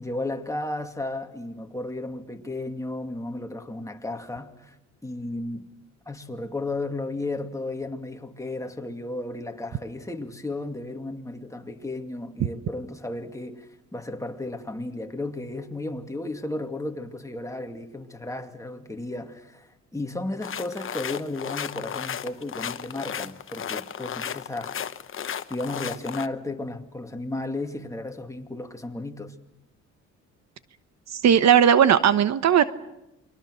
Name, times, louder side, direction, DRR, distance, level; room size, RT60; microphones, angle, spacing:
voice 1, 0.0-4.8 5.0-5.7 6.1-24.9 25.5-29.4, left 2 dB, 10° left, 2.3 m, -34 dB
sound 1, 20.4-26.3, left 8 dB, 45° left, 1.0 m, -34 dB
voice 2, 31.2-32.6, right 8 dB, 60° right, 1.1 m, -17 dB
29.0 x 22.5 x 6.4 m
cardioid pair, 90°, 30 cm